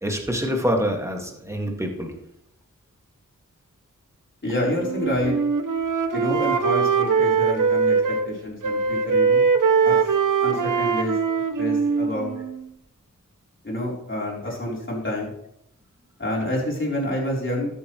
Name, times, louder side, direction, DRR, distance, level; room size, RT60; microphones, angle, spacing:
voice 1, 0.0-2.1, equal, 10° right, 1 dB, 1.9 m, -25 dB
voice 2, 4.4-5.4 6.1-8.0 8.2-9.5 9.8-10.0 10.4-11.1 11.6-12.4 13.6-15.3 16.2-17.7, left 1 dB, 35° left, -4 dB, 3.8 m, -28 dB
Wind instrument woodwind instrument, 4.8-8.3 8.6-12.6, right 5 dB, 75° right, 0.7 m, -22 dB
13.0 x 7.8 x 3.1 m, 0.77 s
wide cardioid pair, 75°, 32 cm